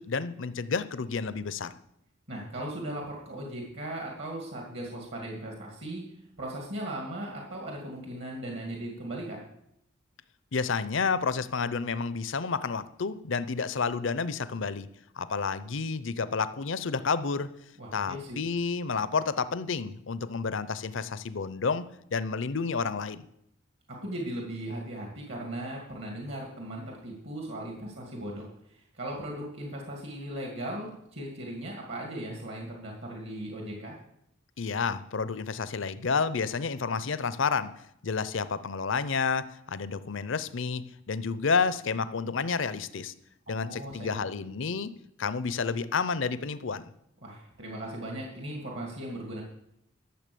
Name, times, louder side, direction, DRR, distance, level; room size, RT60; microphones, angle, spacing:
voice 1, 0.0-1.7 10.5-14.9 15.2-17.5 17.9-23.2 34.6-37.7 38.0-43.1 43.5-44.9 45.2-46.9, left 5 dB, 65° left, 15 dB, 0.6 m, -30 dB
voice 2, 2.3-6.0 6.4-9.4 17.8-18.4 24.0-33.9 43.5-44.2 47.2-49.4, right 1 dB, 60° right, 0 dB, 2.2 m, -38 dB
12.5 x 7.0 x 6.8 m, 0.77 s
head